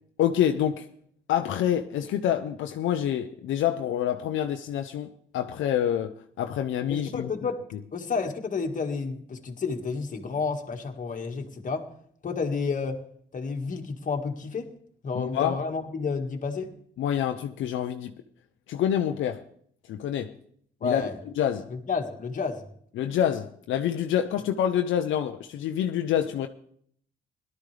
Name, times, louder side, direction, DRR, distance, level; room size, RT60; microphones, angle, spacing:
voice 1, 0.2-0.9 1.3-7.3 7.7-7.8 15.1-15.6 17.0-18.1 18.7-19.4 19.9-20.4 20.8-21.0 21.4-21.7 23.0-26.5, left 10 dB, 75° left, 0.7 m, -27 dB
voice 2, 6.9-7.6 7.9-11.9 12.2-13.0 13.3-14.7 15.0-16.7 20.8-21.2 21.9-22.7, left 4 dB, 40° left, 1.8 m, -30 dB
18.0 x 12.0 x 3.4 m
cardioid pair, 90°, 20 cm